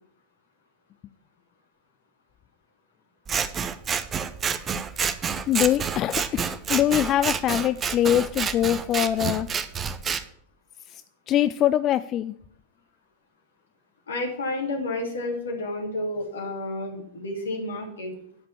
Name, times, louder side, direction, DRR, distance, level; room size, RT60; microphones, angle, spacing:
Scissors, 3.3-10.2, right 6 dB, 25° right, 0.8 m, -29 dB
voice 1, 5.5-9.5 10.9-11.0 11.3-12.3, left 12 dB, 30° left, 13 dB, 0.4 m, -23 dB
voice 2, 14.1-18.2, left 2 dB, 70° left, 1 dB, 3.0 m, -30 dB
11.5 x 5.1 x 8.5 m, 0.68 s
figure-of-eight pair, 90°, 0 cm